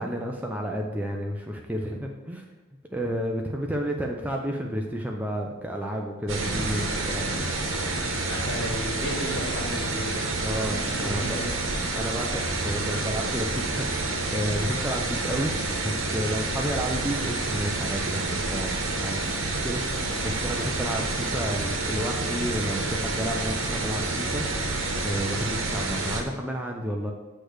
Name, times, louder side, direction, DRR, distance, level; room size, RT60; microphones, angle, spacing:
voice 1, 0.0-2.4 2.9-7.5 10.4-11.4 12.0-15.6 15.8-18.7 19.0-27.1, equal, 5° right, 0 dB, 0.5 m, -31 dB
sound 1, 6.3-26.2, right 2 dB, 70° right, 1.1 m, -29 dB
voice 2, 8.2-11.8, equal, 55° left, -2 dB, 2.1 m, -35 dB
8.2 x 3.3 x 6.2 m, 1.2 s
head